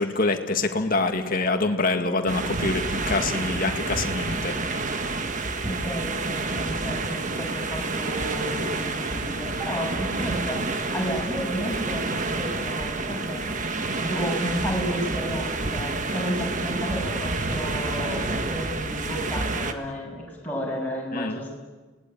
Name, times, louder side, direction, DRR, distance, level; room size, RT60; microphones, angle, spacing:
voice 1, 0.0-4.8 21.1-21.4, left 3 dB, 45° left, 5 dB, 1.9 m, -26 dB
sound 1, 2.3-19.7, right 3 dB, 35° right, 1.6 m, -29 dB
voice 2, 5.6-13.4 14.0-21.5, equal, 10° left, -3 dB, 7.0 m, -32 dB
30.0 x 19.0 x 9.2 m, 1.3 s
head